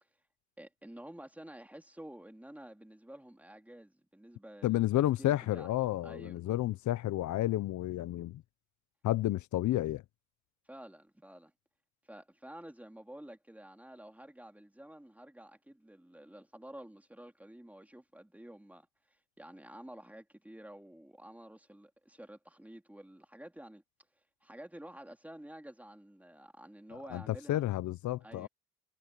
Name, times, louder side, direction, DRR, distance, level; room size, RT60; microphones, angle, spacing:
voice 1, 0.6-4.9 5.2-5.7 6.0-6.4 10.6-11.5 12.0-23.8 24.4-27.6 28.2-28.5, right 1 dB, 5° right, 3.3 m, -50 dB
voice 2, 4.6-8.4 9.0-10.0 27.1-28.5, left 14 dB, 70° left, 0.7 m, -31 dB
cardioid pair, 90°, 30 cm